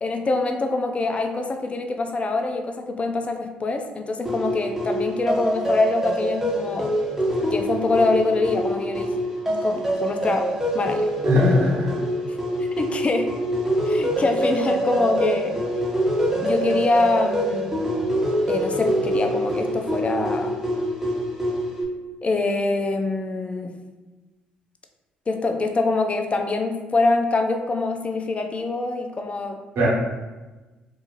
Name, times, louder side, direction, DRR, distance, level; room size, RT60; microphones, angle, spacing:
voice 1, 0.0-7.0 7.5-9.1 9.6-11.1 12.6-13.4 13.8-15.6 16.4-17.8 18.5-20.5 22.2-23.7 25.3-29.6, left 3 dB, 30° left, 5 dB, 0.4 m, -24 dB
sound 1, 4.2-21.8, equal, 10° right, 0.9 m, -25 dB
voice 2, 11.2-12.0 29.7-29.9, left 1 dB, 60° right, -6 dB, 1.2 m, -19 dB
2.7 x 2.4 x 2.5 m, 1.2 s
hypercardioid pair, 55°, 4 cm